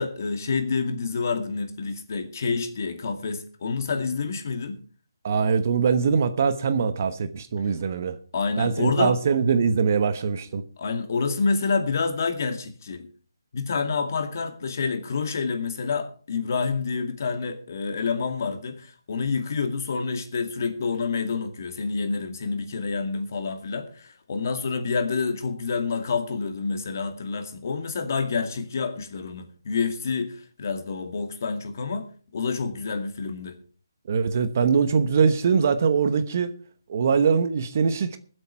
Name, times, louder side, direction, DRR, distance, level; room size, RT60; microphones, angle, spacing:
voice 1, 0.0-4.8 8.3-9.2 10.8-13.1 13.5-32.1 32.3-33.6, left 4 dB, 45° left, 2.2 m, -28 dB
voice 2, 5.2-8.2 8.6-10.6 34.1-36.5 36.9-38.2, right 6 dB, 35° right, 1.0 m, -22 dB
20.5 x 8.0 x 4.5 m
hypercardioid pair, 165°, 2 cm